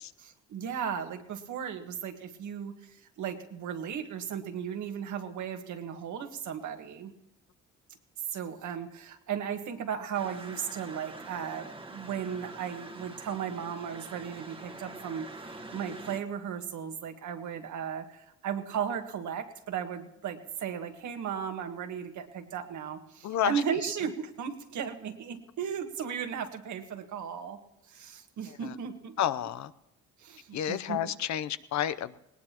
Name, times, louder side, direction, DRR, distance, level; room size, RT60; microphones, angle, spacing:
voice 1, 0.2-7.1 8.3-15.3 15.6-27.6 27.9-29.1 30.2-31.0, right 8 dB, 75° right, 5 dB, 1.7 m, -36 dB
sound 1, 10.1-16.2, right 2 dB, 20° right, 1.3 m, -45 dB
voice 2, 23.2-23.6 28.4-28.7 29.2-29.7 30.5-32.2, left 10 dB, 65° left, 14 dB, 0.7 m, -31 dB
19.5 x 18.5 x 3.0 m, 0.88 s
cardioid pair, 90°, 30 cm